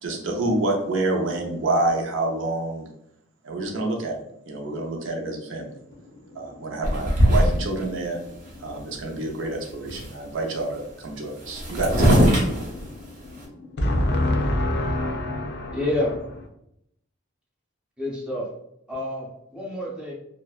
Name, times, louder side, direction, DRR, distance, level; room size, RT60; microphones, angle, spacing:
voice 1, 0.0-2.9 3.4-4.2 4.5-5.8 6.3-8.2 8.6-12.2, right 2 dB, 75° right, 0.6 m, -27 dB
voice 2, 6.0-6.7 12.6-15.9, left 1 dB, 60° left, 0.5 m, -27 dB
sound 1, 6.8-7.9 8.5-8.6 8.8-9.3 9.5-10.2 11.1-11.2 11.4-13.4, equal, 40° right, 0.7 m, -21 dB
voice 3, 15.7-16.1 18.0-18.5 18.9-20.1, left 1 dB, 5° right, 0.7 m, -28 dB
2.6 x 2.1 x 2.3 m
head